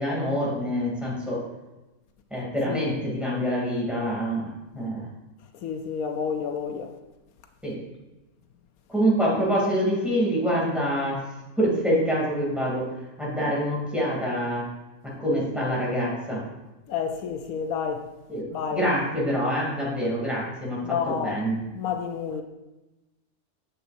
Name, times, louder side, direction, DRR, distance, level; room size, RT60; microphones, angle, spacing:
voice 1, 0.0-1.4 2.3-5.1 7.6-7.8 8.9-11.2 11.6-12.9 13.2-14.7 15.0-16.4 18.3-18.4 18.7-21.6, equal, ahead, 2.5 m, -26 dB
voice 2, 5.6-7.0 16.9-18.1 18.5-19.0 20.8-21.4 21.7-22.4, left 7 dB, 80° left, 1.0 m, -29 dB
9.3 x 7.6 x 2.6 m
omnidirectional pair, 1.5 m